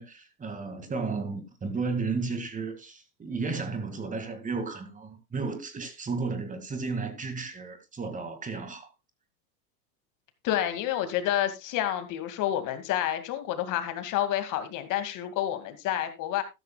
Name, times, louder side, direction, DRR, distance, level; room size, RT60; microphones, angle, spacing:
voice 1, 0.0-8.9, right 4 dB, 15° right, 2.2 m, -33 dB
voice 2, 10.4-16.4, left 12 dB, 40° left, 2.3 m, -29 dB
13.0 x 12.5 x 2.3 m
hypercardioid pair, 115°, 50 cm